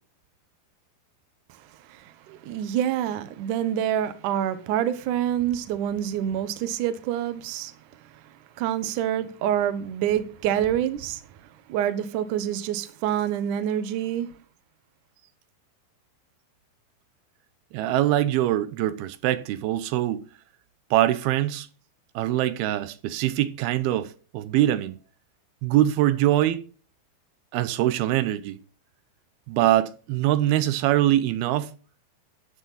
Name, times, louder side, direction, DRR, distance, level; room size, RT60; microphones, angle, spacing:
voice 1, 1.9-7.7 8.6-11.2 11.7-14.3, right 10 dB, 65° right, 2.3 m, -27 dB
voice 2, 17.7-20.2 20.9-21.7 22.2-25.0 25.6-26.6 27.5-28.6 29.5-31.7, right 13 dB, 85° right, 2.8 m, -23 dB
14.0 x 9.9 x 4.1 m
omnidirectional pair, 4.4 m